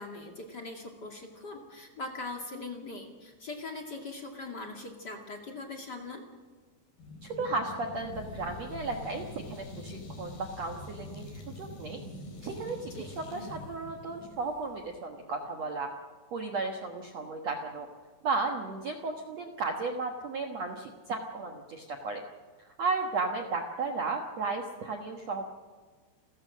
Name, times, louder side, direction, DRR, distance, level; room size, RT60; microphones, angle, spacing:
voice 1, 0.0-6.2 12.9-13.1, left 3 dB, 35° left, 2 dB, 1.8 m, -41 dB
sound 1, 7.0-15.0, left 2 dB, 55° left, 6.0 m, -44 dB
voice 2, 7.2-12.0 12.4-15.9 16.3-17.9 18.2-22.2 22.8-25.5, right 3 dB, 75° right, 3 dB, 1.5 m, -34 dB
29.5 x 14.5 x 6.4 m, 1.4 s
omnidirectional pair, 5.3 m